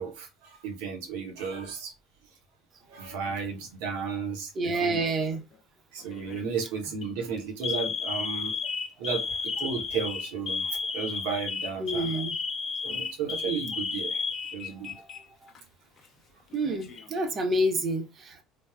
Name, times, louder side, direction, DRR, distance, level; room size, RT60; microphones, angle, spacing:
voice 1, 0.0-1.9 2.9-5.0 5.9-8.5 9.0-12.1 12.8-14.2 14.5-14.9, right 6 dB, 75° right, 0.8 m, -34 dB
voice 2, 4.5-5.4 11.8-12.3 14.9-15.1 15.4-15.5 16.5-18.4, right 1 dB, 40° right, 0.7 m, -28 dB
Alarm, 4.7-5.2 6.1-6.4 6.9-7.1 7.6-15.2 15.5-15.6 16.5-17.2, left 5 dB, 45° left, 0.6 m, -33 dB
3.4 x 2.2 x 2.3 m
hypercardioid pair, 65°, 0 cm